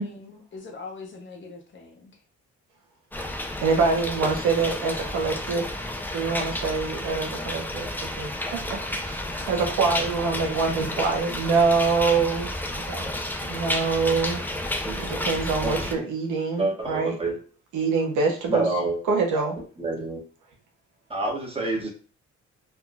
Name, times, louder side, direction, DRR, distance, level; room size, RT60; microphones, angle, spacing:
voice 1, 0.0-2.1 14.3-14.5, left 4 dB, 40° left, 2 dB, 0.8 m, -43 dB
sound 1, 3.1-15.9, left 1 dB, 5° left, 0.4 m, -31 dB
voice 2, 3.6-5.7 6.1-8.8 9.0-12.5 12.9-13.1 13.5-14.4 15.0-17.2 17.7-18.7 19.0-19.5, right 4 dB, 85° right, 1 dB, 0.9 m, -25 dB
voice 3, 15.6-16.0 16.6-17.4 18.5-19.0 19.8-20.2 21.1-21.9, right 2 dB, 20° right, 0 dB, 1.1 m, -28 dB
3.6 x 2.3 x 2.3 m, 0.39 s
cardioid pair, 90°, 30 cm